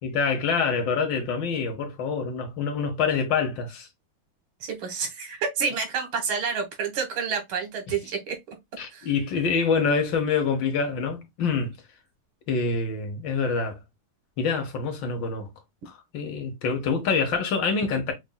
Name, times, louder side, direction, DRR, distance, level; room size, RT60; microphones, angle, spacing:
voice 1, 0.0-3.9 8.8-11.7 12.5-13.8 14.4-15.5 15.9-18.1, left 5 dB, 70° left, 1.6 m, -26 dB
voice 2, 4.6-8.6 8.9-9.1, right 6 dB, 85° right, 2.1 m, -29 dB
5.7 x 2.5 x 2.2 m
omnidirectional pair, 2.2 m